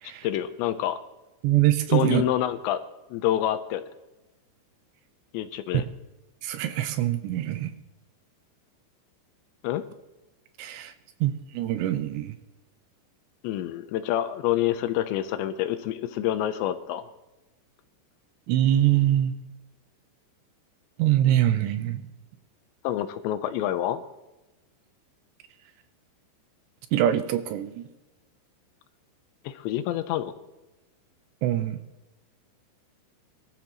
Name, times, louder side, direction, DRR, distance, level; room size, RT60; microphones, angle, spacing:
voice 1, 0.2-1.0 1.9-2.8 3.1-3.9 5.3-5.8 9.6-9.8 13.4-17.1 22.8-24.0 29.4-30.4, left 12 dB, 80° left, 11 dB, 2.8 m, -27 dB
voice 2, 1.4-2.2 6.4-7.7 10.6-10.9 11.2-12.3 18.5-19.3 21.0-22.0 26.9-27.9 31.4-31.8, right 12 dB, 80° right, 10 dB, 2.7 m, -24 dB
24.0 x 13.0 x 3.0 m, 1.0 s
omnidirectional pair, 5.3 m